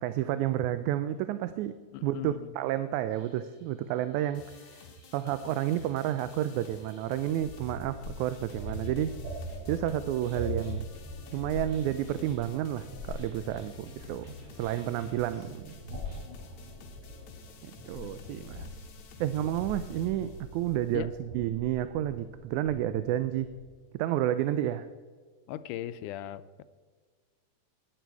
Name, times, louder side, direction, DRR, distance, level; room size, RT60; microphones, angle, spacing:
voice 1, 0.0-1.8 2.0-4.8 5.1-9.2 9.7-10.9 11.3-15.8 17.6-18.7 19.2-23.5 23.9-24.9, right 12 dB, 80° right, 12 dB, 1.9 m, -31 dB
voice 2, 1.9-2.5 18.0-18.5 20.9-21.1 25.5-26.6, left 13 dB, 85° left, 13 dB, 2.1 m, -39 dB
sound 1, 3.1-7.6 8.3-9.1 9.4-16.2, right 2 dB, 40° right, 3.8 m, -55 dB
sound 2, 4.3-21.0, left 3 dB, 65° left, 2.4 m, -53 dB
sound 3, 7.4-23.7, left 1 dB, 60° right, 5.9 m, -42 dB
16.5 x 11.0 x 4.6 m, 1.5 s
omnidirectional pair, 3.5 m